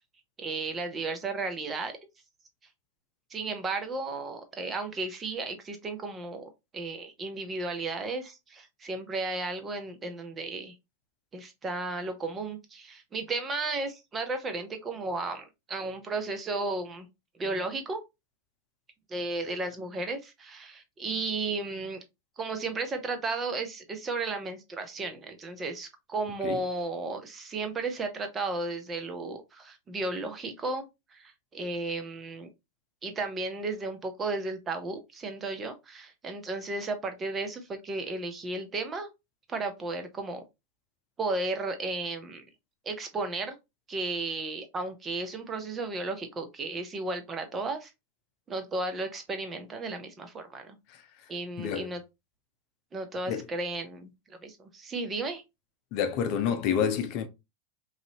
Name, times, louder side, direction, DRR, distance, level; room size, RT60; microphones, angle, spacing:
voice 1, 0.4-2.0 3.3-10.7 11.3-17.1 17.4-18.0 19.1-22.0 22.4-30.9 31.1-32.5 33.0-39.1 39.5-40.4 41.2-42.5 42.8-43.6 43.9-47.9 48.5-50.8 51.3-52.0 52.9-55.4, right 3 dB, 25° right, 0.8 m, -34 dB
voice 2, 51.6-51.9 53.3-53.5 55.9-57.3, left 7 dB, 50° left, 0.6 m, -28 dB
3.2 x 2.6 x 2.8 m
hypercardioid pair, 95°, 0 cm